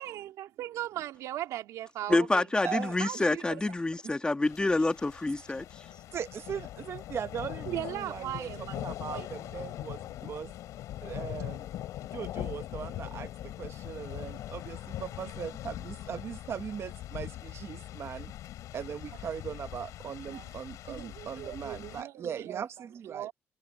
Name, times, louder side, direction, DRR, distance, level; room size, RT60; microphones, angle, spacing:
voice 1, 0.0-2.4 3.0-3.6 7.7-8.8 9.1-9.3 20.2-20.5 20.9-22.6 23.0-23.3, right 13 dB, 90° right, 3.2 m, -38 dB
voice 2, 2.1-5.6, left 2 dB, 15° left, 2.1 m, -27 dB
voice 3, 2.6-3.0 3.3-3.4 4.0-4.1 6.1-10.5 11.0-11.7 12.1-18.3 18.7-23.3, right 7 dB, 55° right, 1.1 m, -39 dB
sound 1, 4.4-22.0, left 13 dB, 85° left, 7.9 m, -41 dB
cardioid pair, 95°, 5 cm